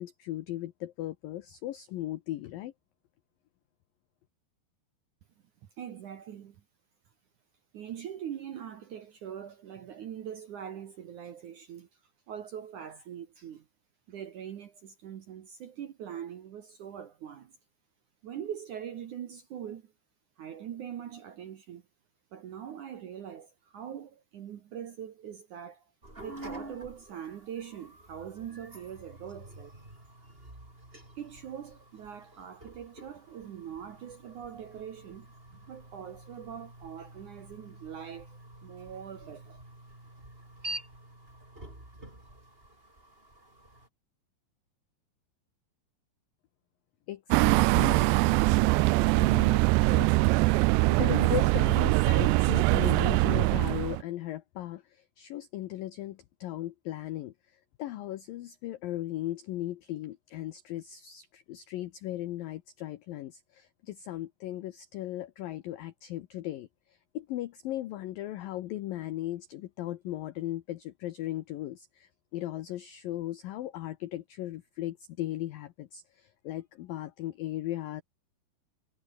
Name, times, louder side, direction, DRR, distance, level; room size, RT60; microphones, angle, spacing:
voice 1, 0.0-2.7 47.1-48.1 49.1-50.1 50.9-78.0, left 14 dB, 85° left, 2.0 m, -37 dB
voice 2, 5.8-6.6 7.7-11.9 12.3-13.6 14.1-17.5 18.2-19.8 20.4-21.8 22.3-25.8 26.2-29.7 31.2-35.3 35.7-39.6, right 9 dB, 65° right, 2.0 m, -42 dB
sound 1, 26.0-43.9, right 1 dB, 10° right, 6.7 m, -48 dB
sound 2, 47.3-54.0, right 24 dB, 90° right, 2.4 m, -23 dB
omnidirectional pair, 5.4 m